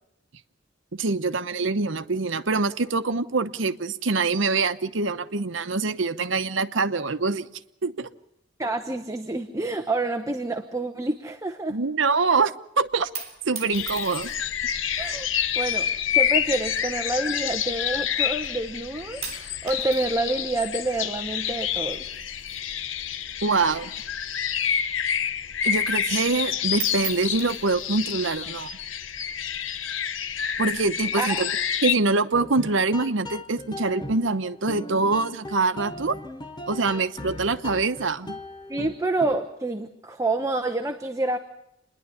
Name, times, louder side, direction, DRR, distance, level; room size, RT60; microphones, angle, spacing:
voice 1, 0.9-7.5 7.8-8.1 11.7-13.1 13.5-14.3 23.4-23.9 25.6-28.7 30.6-31.5 31.8-36.2 36.7-38.4, right 3 dB, 75° right, 11 dB, 0.9 m, -24 dB
voice 2, 8.6-11.8 15.0-15.3 15.6-22.1 31.2-31.4 38.7-41.4, right 2 dB, 15° right, 6 dB, 0.9 m, -28 dB
sound 1, 12.9-14.6 15.4-15.9 16.7-18.1 18.4-18.8 19.2-23.3 23.6-25.2 25.6-25.7 26.0-26.4 26.7-28.5 29.3-29.9, right 5 dB, 35° right, 4.0 m, -40 dB
sound 2, 13.7-31.9, left 9 dB, 85° left, 0.8 m, -28 dB
sound 3, 32.3-39.6, left 1 dB, 25° left, 1.1 m, -38 dB
28.5 x 11.0 x 9.8 m, 0.81 s
head